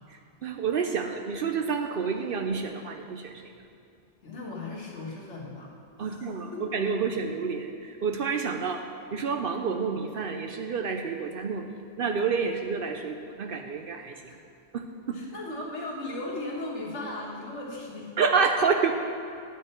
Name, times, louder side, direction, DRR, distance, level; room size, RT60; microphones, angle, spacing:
voice 1, 0.4-3.5 6.0-8.9 9.1-14.1 14.7-15.2 18.2-18.9, right 5 dB, 60° right, 5 dB, 0.6 m, -29 dB
voice 2, 4.2-5.7 6.0-6.8 8.6-8.8 14.3-14.4 15.1-18.1, left 2 dB, 75° left, -4 dB, 2.0 m, -37 dB
9.3 x 8.8 x 4.4 m, 2.5 s
omnidirectional pair, 1.2 m